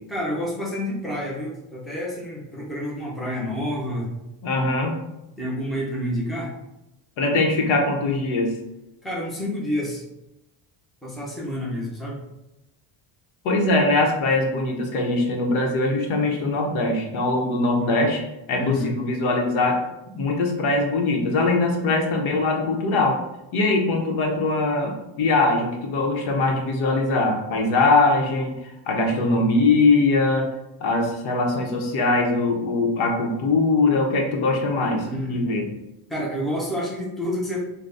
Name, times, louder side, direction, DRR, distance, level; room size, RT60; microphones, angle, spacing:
voice 1, 0.1-4.2 5.4-6.5 9.0-10.0 11.0-12.2 17.8-18.0 18.5-18.9 29.1-29.4 35.0-35.4 36.1-37.6, equal, ahead, -6 dB, 0.6 m, -29 dB
voice 2, 4.4-5.0 7.2-8.6 13.4-18.2 18.5-19.8 20.1-23.2 23.5-30.5 30.8-35.7, left 2 dB, 75° left, 2 dB, 0.9 m, -22 dB
3.9 x 2.2 x 3.4 m, 0.90 s
cardioid pair, 175°, 49 cm